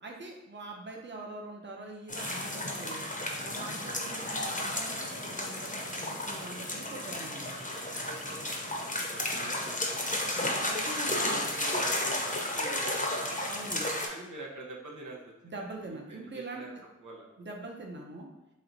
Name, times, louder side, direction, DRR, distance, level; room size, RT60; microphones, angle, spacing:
voice 1, 0.0-3.1 3.4-7.6 10.6-11.4 13.5-13.9 15.4-16.7 17.4-18.3, right 2 dB, 40° right, 0 dB, 0.7 m, -43 dB
sound 1, 2.1-14.1, left 1 dB, 25° left, 0.7 m, -33 dB
voice 2, 8.1-8.4 9.1-10.4 11.1-13.4 14.1-15.3 16.1-16.7 17.0-17.3, right 2 dB, 85° right, -2 dB, 0.8 m, -44 dB
3.2 x 2.9 x 3.9 m, 0.96 s
wide cardioid pair, 40°, 30 cm